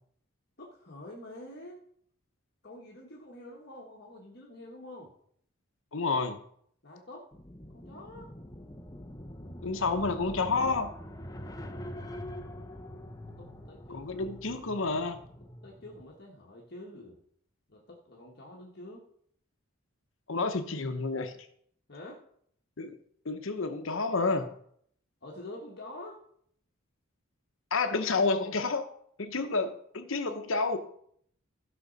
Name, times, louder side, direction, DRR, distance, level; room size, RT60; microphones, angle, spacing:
voice 1, 0.6-1.8 2.6-5.1 6.8-7.3 7.7-8.3 13.4-14.1 15.6-17.2 17.7-19.0 21.9-22.2 25.2-26.2, left 1 dB, 50° left, -3 dB, 1.6 m, -47 dB
voice 2, 5.9-6.4 9.6-10.9 13.9-15.2 20.3-21.3 22.8-23.0 23.2-24.5 27.7-28.9 29.2-30.8, left 3 dB, 70° left, 7 dB, 0.9 m, -29 dB
sound 1, 7.3-16.1, left 1 dB, 15° left, 0.7 m, -44 dB
16.0 x 6.0 x 4.1 m, 0.66 s
head